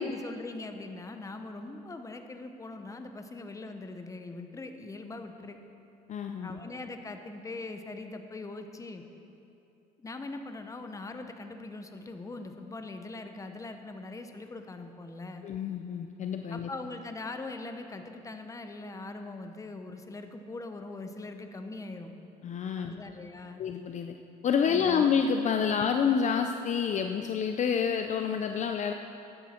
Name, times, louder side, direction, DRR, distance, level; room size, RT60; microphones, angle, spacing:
voice 1, 0.0-5.6 6.4-9.0 10.0-15.5 16.5-22.1 22.8-23.6 24.7-25.1 25.6-25.7, left 2 dB, 20° left, 6 dB, 0.9 m, -41 dB
voice 2, 6.1-6.6 15.4-16.7 22.4-22.9 23.6-24.1 24.4-28.9, left 7 dB, 45° left, 6 dB, 0.5 m, -28 dB
13.5 x 10.0 x 4.4 m, 2.8 s
cardioid pair, 110°, 17 cm